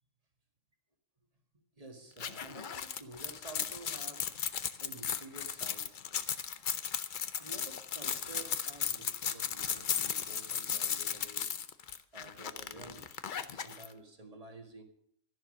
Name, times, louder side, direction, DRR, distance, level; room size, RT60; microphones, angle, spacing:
voice 1, 1.8-4.4 4.8-6.0 7.4-11.6 12.1-13.2 13.5-14.8, right 2 dB, 30° right, 1.9 m, -51 dB
sound 1, 2.2-13.9, left 7 dB, 45° left, 0.7 m, -36 dB
13.0 x 11.0 x 6.5 m
omnidirectional pair, 1.3 m